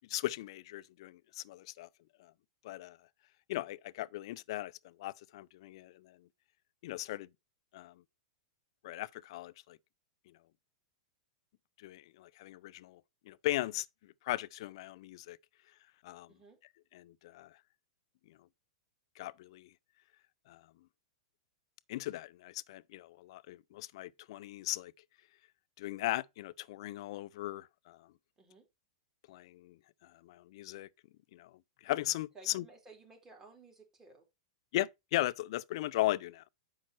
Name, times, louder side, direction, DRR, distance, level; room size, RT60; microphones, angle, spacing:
voice 1, 0.1-1.9 2.2-2.3 2.6-3.0 3.5-6.2 6.8-7.3 7.7-7.9 8.8-9.8 11.8-13.0 13.3-13.9 14.3-15.4 16.0-16.3 16.9-17.5 19.2-19.7 20.5-20.6 21.9-24.9 25.8-28.0 29.3-29.8 30.2-30.9 31.3-31.5 31.8-32.6 34.7-36.5, left 16 dB, 60° left, 0.5 m, -38 dB
voice 2, 16.3-16.6 28.4-28.7 32.3-34.2, right 3 dB, 15° right, 3.7 m, -56 dB
7.5 x 5.6 x 4.4 m
hypercardioid pair, 125°, 3 cm